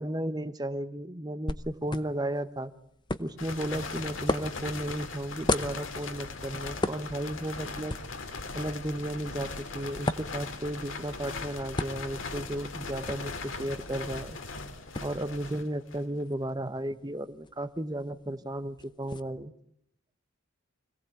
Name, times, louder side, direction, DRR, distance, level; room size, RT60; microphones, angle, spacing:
voice 1, 0.0-2.7 3.2-7.9 8.5-14.4 15.0-19.5, right 1 dB, 20° right, 12 dB, 1.0 m, -34 dB
sound 1, 1.5-19.2, left 2 dB, 20° left, 0.8 m, -39 dB
sound 2, 3.4-16.2, left 3 dB, 65° left, 2.5 m, -39 dB
25.5 x 18.0 x 8.4 m, 0.75 s
head